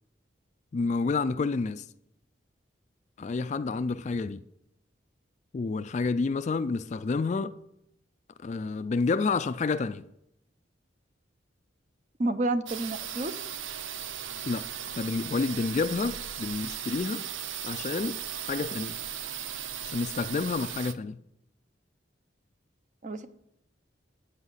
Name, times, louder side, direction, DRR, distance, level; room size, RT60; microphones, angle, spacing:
voice 1, 0.7-1.8 3.2-4.4 5.5-7.5 8.4-10.0 14.4-14.7 15.0-17.3 17.6-19.0 19.9-21.2, left 4 dB, 40° left, 0.3 m, -29 dB
voice 2, 12.2-13.3 23.0-23.3, right 2 dB, 40° right, 0.6 m, -29 dB
sound 1, 12.7-20.9, right 9 dB, 90° right, 0.6 m, -37 dB
9.0 x 5.5 x 7.8 m
head